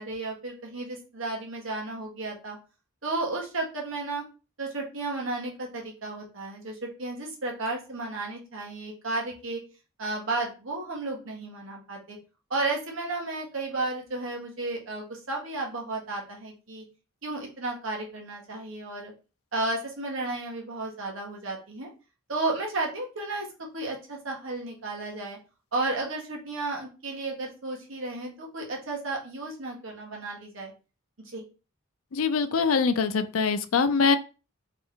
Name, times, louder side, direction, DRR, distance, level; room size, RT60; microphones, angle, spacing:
voice 1, 0.0-2.6 3.0-4.2 4.6-9.6 10.0-12.2 12.5-16.8 17.2-19.1 19.5-21.9 22.3-23.5 23.7-25.4 25.7-30.7 31.2-31.4, right 2 dB, 75° right, 0 dB, 1.5 m, -33 dB
voice 2, 32.1-34.2, left 5 dB, 85° left, 11 dB, 0.5 m, -23 dB
3.5 x 3.2 x 3.6 m, 0.32 s
head